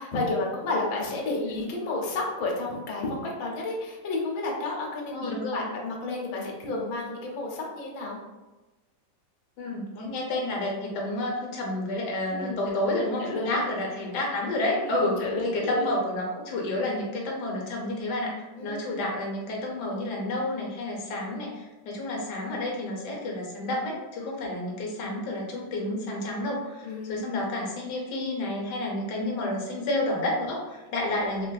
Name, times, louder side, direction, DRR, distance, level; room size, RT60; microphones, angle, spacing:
voice 1, 0.0-8.2 12.3-13.6 14.8-15.9 18.6-19.1 26.8-27.4, left 2 dB, 85° left, -1 dB, 1.4 m, -31 dB
voice 2, 5.1-5.6 9.6-31.5, left 1 dB, 70° left, -2 dB, 1.3 m, -30 dB
3.6 x 2.5 x 2.2 m, 1.1 s
omnidirectional pair, 2.0 m